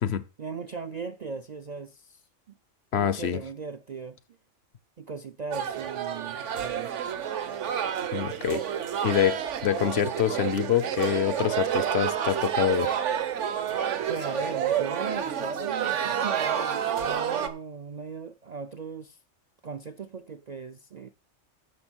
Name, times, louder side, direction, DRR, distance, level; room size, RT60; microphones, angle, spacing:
voice 1, 0.4-2.2 2.9-4.2 5.0-6.9 14.1-19.2 19.6-21.1, right 5 dB, 55° right, 0.5 m, -38 dB
voice 2, 2.9-3.4 8.1-8.6 9.0-13.0, left 10 dB, 60° left, 0.8 m, -26 dB
sound 1, 5.5-17.5, right 9 dB, 70° right, 1.2 m, -29 dB
9.8 x 6.2 x 6.1 m
omnidirectional pair, 1.3 m